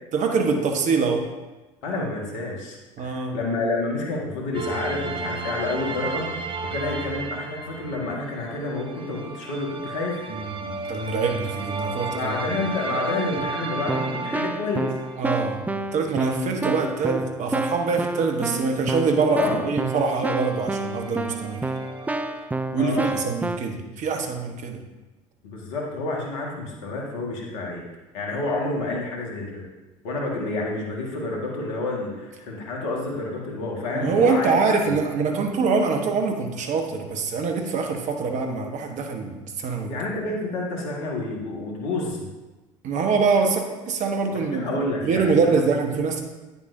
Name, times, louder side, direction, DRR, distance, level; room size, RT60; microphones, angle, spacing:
voice 1, 0.1-1.3 3.0-3.4 10.3-12.4 15.2-21.7 22.7-24.8 33.9-39.9 42.8-46.2, right 4 dB, 50° right, 4 dB, 1.3 m, -24 dB
voice 2, 1.8-6.3 6.6-10.2 12.1-14.9 19.3-19.7 22.8-23.2 25.4-27.8 28.1-29.7 30.0-35.0 39.9-42.3 44.3-45.7, left 2 dB, 75° left, -1 dB, 1.8 m, -29 dB
sound 1, 4.5-15.3 19.0-19.1 19.3-22.5, right 3 dB, 30° right, 0.8 m, -34 dB
Keyboard (musical), 13.4-13.5 13.9-23.6, right 2 dB, 10° right, 0.4 m, -29 dB
9.3 x 6.9 x 2.7 m, 1.1 s
hypercardioid pair, 70°, 16 cm